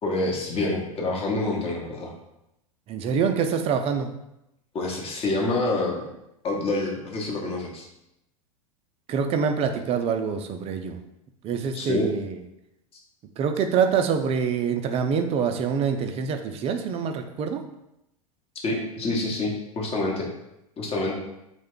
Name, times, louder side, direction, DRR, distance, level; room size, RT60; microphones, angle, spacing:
voice 1, 0.0-2.1 4.7-6.0 6.4-7.9 11.7-12.1 18.6-20.3 20.8-21.1, left 2 dB, 30° left, -1 dB, 0.9 m, -27 dB
voice 2, 2.9-4.1 9.1-11.0 11.4-12.4 13.4-17.6, right 6 dB, 35° right, 7 dB, 0.4 m, -25 dB
3.1 x 2.2 x 3.6 m, 0.86 s
hypercardioid pair, 95°, 18 cm